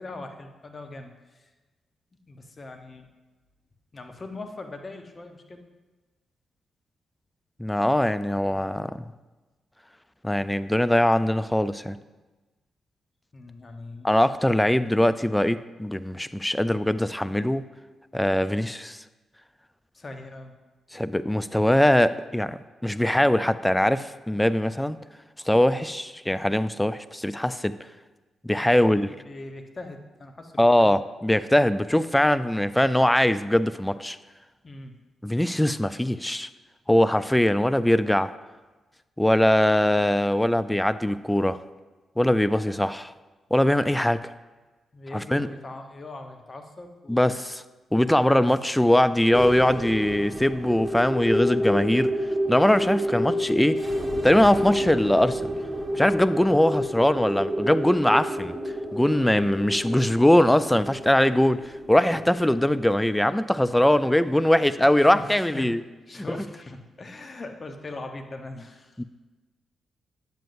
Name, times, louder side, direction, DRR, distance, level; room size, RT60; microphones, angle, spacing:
voice 1, 0.0-1.5 2.3-3.1 3.9-5.6 13.3-14.1 19.9-20.5 25.7-25.8 28.6-28.9 29.2-31.0 34.6-34.9 44.9-47.4 48.3-48.5 56.4-56.6 64.0-64.2 65.0-65.7 66.1-69.0, left 2 dB, 40° left, 5 dB, 0.9 m, -41 dB
voice 2, 7.6-9.0 10.2-12.0 14.0-17.7 18.1-19.0 20.9-25.0 25.5-27.7 28.4-29.1 30.6-34.2 35.2-36.5 36.9-38.3 39.2-41.6 42.2-43.1 43.5-44.3 45.1-45.5 47.1-47.6 47.9-52.1 52.5-53.8 54.2-55.5 55.9-58.5 58.9-65.8 66.2-66.3 69.0-69.1, left 1 dB, 10° left, 14 dB, 0.4 m, -21 dB
sound 1, 49.3-62.9, equal, 20° right, 1.0 m, -29 dB
9.0 x 7.5 x 2.6 m, 1.2 s
hypercardioid pair, 40°, 0 cm